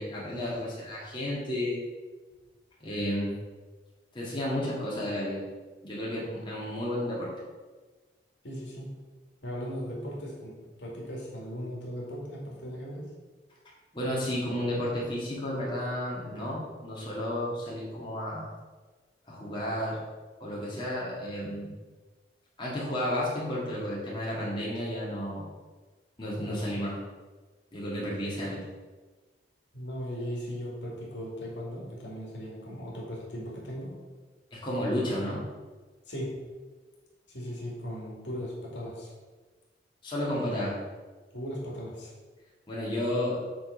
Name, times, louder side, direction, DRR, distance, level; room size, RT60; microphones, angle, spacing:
voice 1, 0.0-1.8 2.8-3.3 4.1-5.4 5.8-7.3 13.9-18.5 19.3-20.0 20.4-21.7 22.6-25.5 26.2-26.9 27.7-28.7 34.5-35.4 40.0-40.8 42.7-43.4, left 1 dB, 25° left, -6 dB, 1.8 m, -32 dB
voice 2, 8.4-9.0 9.4-13.1 26.4-26.6 29.7-34.0 36.1-36.5 37.3-39.1 41.3-42.1, equal, 80° left, -3 dB, 2.2 m, -38 dB
7.6 x 3.8 x 5.2 m, 1.3 s
head